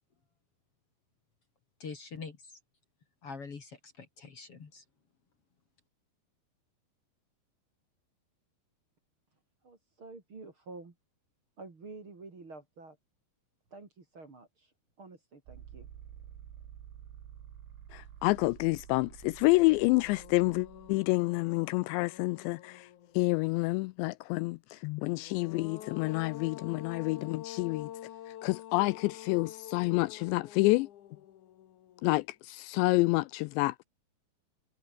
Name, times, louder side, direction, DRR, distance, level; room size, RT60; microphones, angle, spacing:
voice 1, 1.8-2.4 3.2-4.8, left 5 dB, 40° left, 2.8 m, -44 dB
voice 2, 9.6-10.9 11.6-13.0 13.7-14.7 15.0-15.9, right 3 dB, 30° right, 3.5 m, -49 dB
sound 1, 15.5-21.0, right 10 dB, 80° right, 4.7 m, -50 dB
voice 3, 17.9-22.9 23.1-27.9 28.4-30.9 32.0-33.8, left 23 dB, 85° left, 2.7 m, -28 dB
sound 2, 19.2-19.3 19.7-23.4 25.0-32.3, left 11 dB, 60° left, 2.2 m, -47 dB
omnidirectional pair, 5.3 m